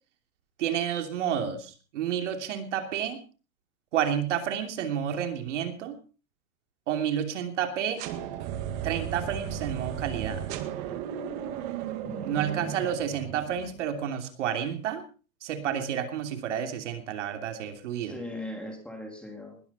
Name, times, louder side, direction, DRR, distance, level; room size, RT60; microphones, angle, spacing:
voice 1, 0.6-3.2 3.9-6.0 6.9-8.0 8.8-10.4 12.2-15.0 15.4-18.1, right 9 dB, 55° right, 6 dB, 3.0 m, -30 dB
sound 1, 8.0-13.9, right 9 dB, 30° right, 1.8 m, -35 dB
voice 2, 12.0-12.7 18.0-19.6, left 1 dB, ahead, 3 dB, 2.4 m, -39 dB
20.5 x 13.0 x 4.2 m, 0.36 s
supercardioid pair, 165°, 42 cm